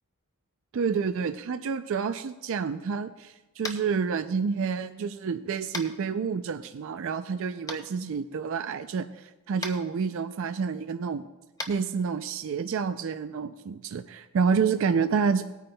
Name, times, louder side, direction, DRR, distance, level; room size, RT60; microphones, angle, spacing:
voice 1, 0.7-11.2 11.7-15.4, right 5 dB, 60° right, 9 dB, 0.4 m, -29 dB
Tap, 3.6-3.9 5.7-5.9 7.7-7.8 9.6-9.7 11.5-11.7, left 2 dB, 15° left, 0.7 m, -34 dB
19.0 x 9.1 x 2.2 m, 1.1 s
head